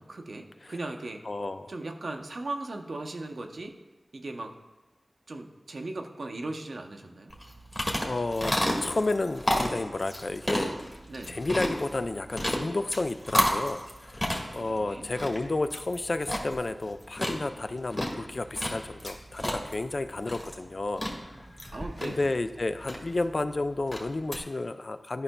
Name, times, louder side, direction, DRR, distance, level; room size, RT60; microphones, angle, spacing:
voice 1, 0.0-1.2 1.7-3.7 4.1-4.5 5.3-7.3 11.1-11.4 14.5-15.1 21.7-22.2, right 2 dB, 80° right, 3 dB, 0.6 m, -38 dB
voice 2, 1.2-1.7 8.0-10.7 11.3-21.1 21.6-21.7 22.0-25.2, left 2 dB, 55° left, 10 dB, 0.3 m, -31 dB
sound 1, 7.3-24.4, equal, 20° left, 1.3 m, -32 dB
11.5 x 5.4 x 2.2 m, 1.1 s
wide cardioid pair, 60°, 0 cm